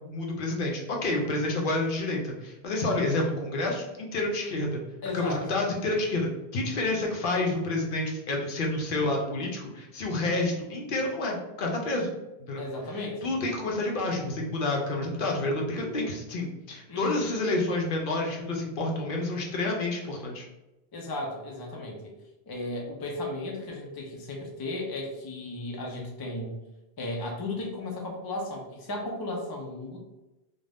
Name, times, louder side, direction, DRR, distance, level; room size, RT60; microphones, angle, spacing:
voice 1, 0.0-4.8 5.1-12.1 12.5-12.6 13.2-20.5, left 2 dB, 60° left, 0 dB, 0.7 m, -29 dB
voice 2, 5.0-5.5 12.6-13.2 16.9-17.3 20.9-22.1 22.5-26.6 27.0-30.0, left 2 dB, 40° left, 0 dB, 0.3 m, -35 dB
2.5 x 2.2 x 3.3 m, 0.99 s
omnidirectional pair, 1.1 m